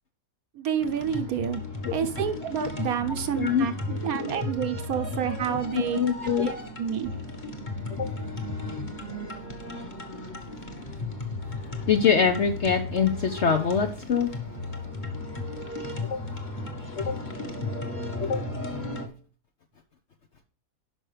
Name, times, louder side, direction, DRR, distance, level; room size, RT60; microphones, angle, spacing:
voice 1, 0.5-1.6 1.9-3.7 4.0-7.1, right 8 dB, 80° right, 1.4 m, -29 dB
sound 1, 0.8-19.1, left 2 dB, 30° left, 1.6 m, -35 dB
voice 2, 5.5-6.5 8.0-8.1 11.9-14.3 16.1-16.2 17.0-17.2 18.2-18.4, left 6 dB, 55° left, 1.0 m, -24 dB
11.0 x 5.8 x 3.3 m
omnidirectional pair, 1.5 m